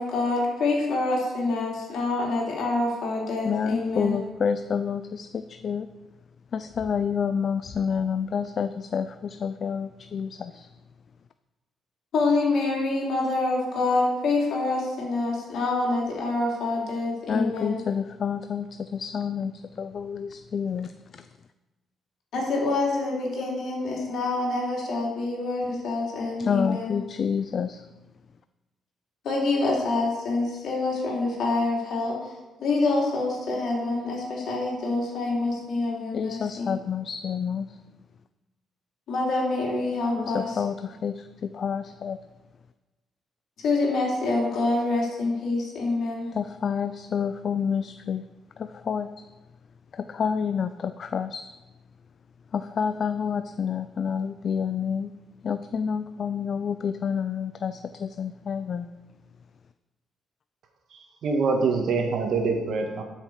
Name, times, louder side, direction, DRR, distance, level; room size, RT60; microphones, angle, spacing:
voice 1, 0.0-4.2 12.1-17.8 22.3-27.0 29.2-32.3 32.6-36.7 39.1-40.6 43.6-46.3, left 2 dB, 70° left, -3 dB, 3.5 m, -26 dB
voice 2, 3.4-5.9 6.5-10.7 17.3-19.5 19.8-21.2 26.4-27.8 36.1-37.7 40.2-42.2 46.3-48.2 48.6-49.1 49.9-51.5 52.5-55.1 55.4-58.9, left 6 dB, 50° left, 11 dB, 0.4 m, -29 dB
voice 3, 60.9-63.0, right 4 dB, 65° right, 3 dB, 1.7 m, -25 dB
12.0 x 6.6 x 4.9 m, 1.1 s
cardioid pair, 90°, 0 cm